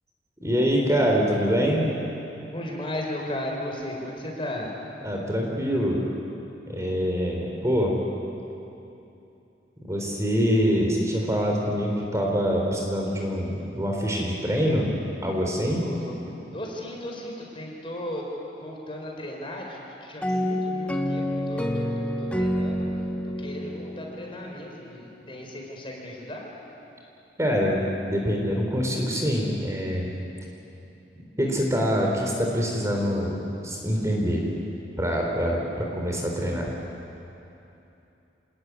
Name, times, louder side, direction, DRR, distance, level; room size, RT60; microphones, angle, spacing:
voice 1, 0.4-1.8 5.0-6.0 6.7-8.0 9.8-14.9 15.2-15.8 27.4-30.1 31.4-33.4 33.6-34.5 35.0-36.7, equal, 15° right, 0 dB, 3.7 m, -25 dB
voice 2, 2.5-4.7 15.8-16.2 16.5-18.3 18.6-22.9 23.2-26.5, left 1 dB, 30° left, 0 dB, 4.7 m, -36 dB
sound 1, 20.2-24.9, equal, 10° left, 1.4 m, -28 dB
27.5 x 20.0 x 9.6 m, 2.9 s
head